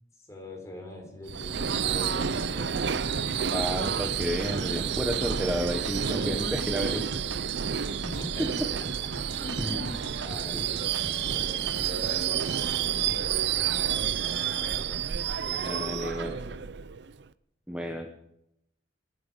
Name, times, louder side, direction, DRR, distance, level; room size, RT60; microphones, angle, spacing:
voice 1, 0.3-3.0 5.4-7.3 8.0-8.6 9.3-16.6, left 1 dB, 15° left, 1 dB, 4.3 m, -42 dB
Subway metro underground / Screech, 1.3-17.2, right 8 dB, 60° right, 0.5 m, -30 dB
sound 1, 2.0-6.9 7.1-12.6, right 3 dB, 80° right, 1.3 m, -41 dB
voice 2, 3.5-7.0 8.4-8.5 9.6-9.8 10.5-10.7 15.7-16.4 17.7-18.1, equal, 5° right, 4 dB, 1.1 m, -31 dB
24.5 x 10.0 x 5.3 m, 0.80 s
head